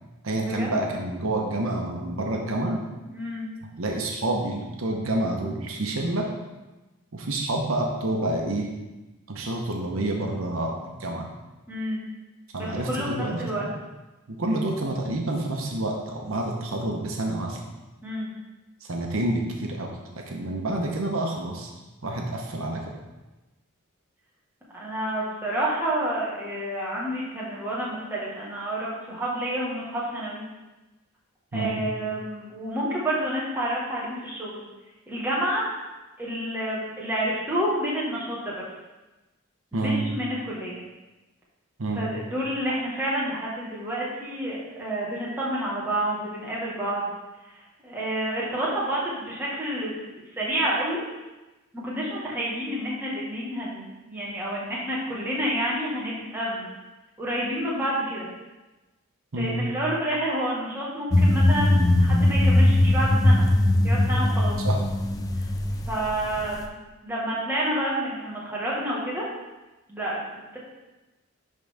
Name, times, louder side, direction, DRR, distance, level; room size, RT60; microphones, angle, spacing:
voice 1, 0.2-2.8 3.8-6.3 7.1-8.7 9.3-11.3 12.5-13.7 14.3-17.6 18.8-21.7 22.0-22.8 31.5-31.8 39.7-40.1 41.8-42.1 59.3-59.6 64.6-64.8, right 1 dB, 75° right, 0 dB, 0.9 m, -28 dB
voice 2, 3.1-3.5 11.7-12.0 12.6-13.7 18.0-18.3 24.7-30.4 31.5-34.6 35.1-35.7 36.2-38.5 39.7-40.8 41.9-47.1 47.8-51.0 51.7-56.7 57.2-58.2 59.4-63.4 63.8-64.5 65.9-69.2 69.9-70.3, right 1 dB, 10° right, -6 dB, 1.5 m, -29 dB
sound 1, 61.1-66.6, left 1 dB, 15° left, 0.3 m, -20 dB
10.5 x 3.8 x 3.5 m, 1.1 s
head